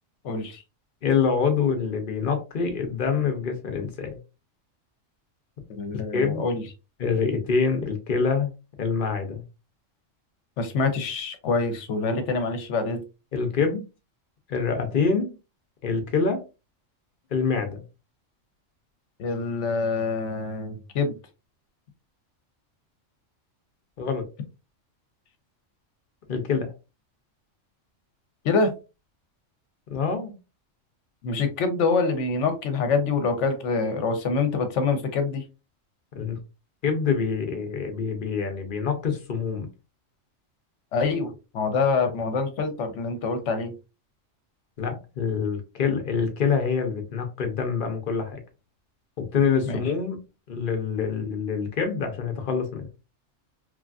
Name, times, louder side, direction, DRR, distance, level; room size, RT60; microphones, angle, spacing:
voice 1, 0.2-0.6 5.7-6.6 10.6-13.0 19.2-21.2 28.4-28.7 31.2-35.4 40.9-43.7 49.7-49.8, left 4 dB, 70° left, 7 dB, 1.0 m, -25 dB
voice 2, 1.0-4.2 5.9-6.4 7.0-8.5 8.8-9.4 13.3-13.8 14.5-15.3 15.8-16.4 17.3-17.8 24.0-24.2 26.3-26.7 29.9-30.3 36.1-36.4 36.8-39.7 44.8-48.4 49.2-50.2 50.5-52.9, left 5 dB, 50° left, 5 dB, 0.7 m, -26 dB
3.2 x 2.4 x 2.3 m, 0.29 s
omnidirectional pair, 1.3 m